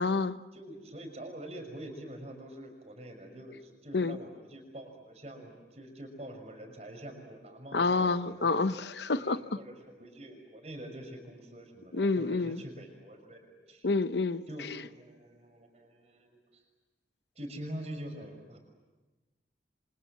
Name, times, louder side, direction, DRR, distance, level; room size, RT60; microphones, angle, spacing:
voice 1, 0.0-0.4 3.9-4.2 7.7-9.4 11.9-12.6 13.8-14.8, left 3 dB, 75° left, 0.8 m, -28 dB
voice 2, 0.5-8.5 9.1-13.9 14.5-16.6 17.3-18.6, right 1 dB, 35° right, 6.0 m, -45 dB
28.5 x 26.5 x 7.4 m
head